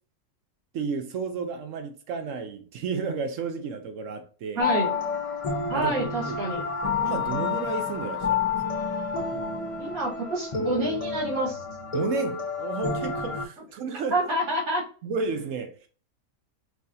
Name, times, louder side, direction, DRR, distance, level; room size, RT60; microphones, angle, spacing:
voice 1, 0.7-4.7 5.7-6.0 6.3-6.4 7.0-8.5 11.9-14.2 15.0-15.8, right 5 dB, 70° right, 0.9 m, -32 dB
sound 1, 4.6-13.5, left 5 dB, 40° left, 0.5 m, -29 dB
voice 2, 4.6-4.9 5.7-6.6 9.8-11.6 14.1-14.8, right 1 dB, 85° right, 2.0 m, -27 dB
4.8 x 2.4 x 2.6 m
omnidirectional pair, 1.5 m